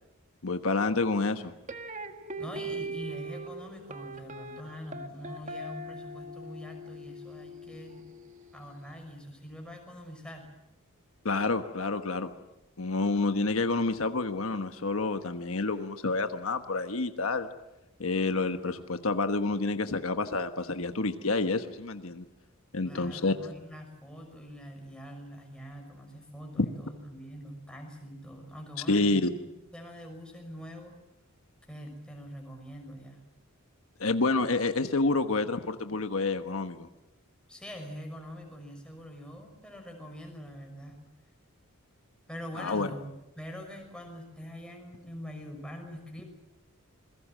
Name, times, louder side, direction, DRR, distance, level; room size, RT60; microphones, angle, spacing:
voice 1, 0.4-1.5 11.2-12.3 12.8-17.5 18.0-22.2 22.7-23.3 26.6-26.7 28.9-29.3 34.0-36.9 42.6-42.9, left 3 dB, 70° left, 8 dB, 1.2 m, -28 dB
sound 1, 1.7-8.8, right 2 dB, 35° right, 1.7 m, -41 dB
voice 2, 2.4-8.2 8.5-10.5 22.8-29.3 29.7-31.0 31.7-33.2 37.5-41.0 42.3-43.1 43.4-46.2, equal, 5° left, 3 dB, 5.9 m, -44 dB
27.5 x 21.5 x 7.5 m, 0.95 s
head